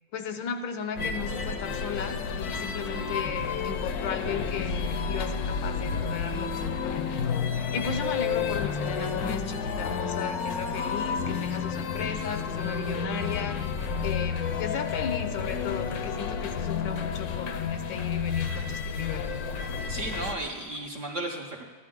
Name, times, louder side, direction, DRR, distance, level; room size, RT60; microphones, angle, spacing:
voice 1, 0.1-13.7 14.0-19.3, left 7 dB, 85° left, 7 dB, 1.5 m, -35 dB
sound 1, 1.0-20.3, left 5 dB, 65° left, 1.0 m, -31 dB
voice 2, 11.2-11.6 19.9-21.6, right 2 dB, 65° right, 0 dB, 0.8 m, -35 dB
14.5 x 10.5 x 3.7 m, 1.5 s
omnidirectional pair, 2.0 m